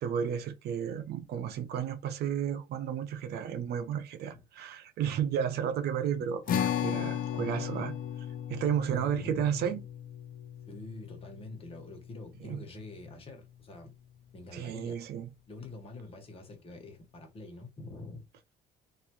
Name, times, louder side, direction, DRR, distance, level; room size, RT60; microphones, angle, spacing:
voice 1, 0.0-7.9 8.5-9.8 12.4-12.6 14.5-15.3, right 8 dB, 70° right, 0.7 m, -32 dB
sound 1, 6.5-13.1, left 9 dB, 55° left, 0.6 m, -36 dB
voice 2, 8.8-9.6 10.7-13.9 14.3-15.0 15.5-18.2, left 2 dB, 35° left, 1.4 m, -45 dB
3.3 x 2.6 x 3.0 m
cardioid pair, 110°, 17 cm